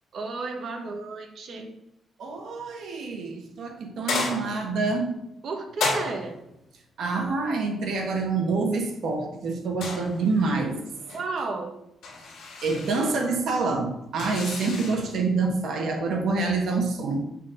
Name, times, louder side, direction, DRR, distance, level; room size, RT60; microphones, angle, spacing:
voice 1, 0.1-1.8 5.4-6.4 11.1-11.8, right 3 dB, 50° right, 1.2 m, -32 dB
voice 2, 2.2-5.1 7.0-10.8 12.6-17.2, right 3 dB, 70° right, 1.5 m, -26 dB
sound 1, 4.1-4.8 5.8-6.5 9.8-10.5 10.8-11.2 12.0-13.1 14.2-15.1, left 4 dB, 85° left, 2.4 m, -32 dB
7.4 x 4.1 x 6.4 m
cardioid pair, 155°, 0 cm